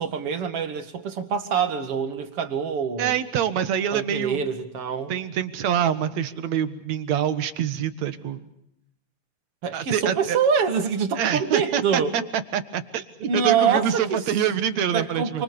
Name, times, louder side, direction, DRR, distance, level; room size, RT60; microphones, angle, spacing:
voice 1, 0.0-3.2 3.9-5.1 9.6-12.1 13.2-14.2 14.9-15.4, right 6 dB, 50° right, 8 dB, 2.9 m, -25 dB
voice 2, 3.0-4.4 5.1-8.4 9.7-10.4 11.2-13.0 13.3-15.4, right 9 dB, 70° right, 12 dB, 2.7 m, -25 dB
28.0 x 26.0 x 6.8 m, 0.77 s
omnidirectional pair, 3.4 m